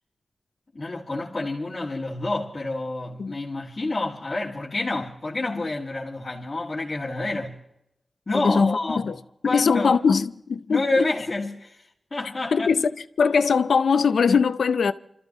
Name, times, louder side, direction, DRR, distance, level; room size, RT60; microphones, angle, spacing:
voice 1, 0.7-7.6 8.3-9.1 9.4-10.0 10.7-11.8 12.1-12.7, left 2 dB, 45° left, 2.2 m, -28 dB
voice 2, 8.3-8.8 9.0-9.1 9.5-11.1 12.5-14.9, left 5 dB, 85° left, 0.6 m, -21 dB
29.0 x 14.0 x 3.1 m
cardioid pair, 45°, 0 cm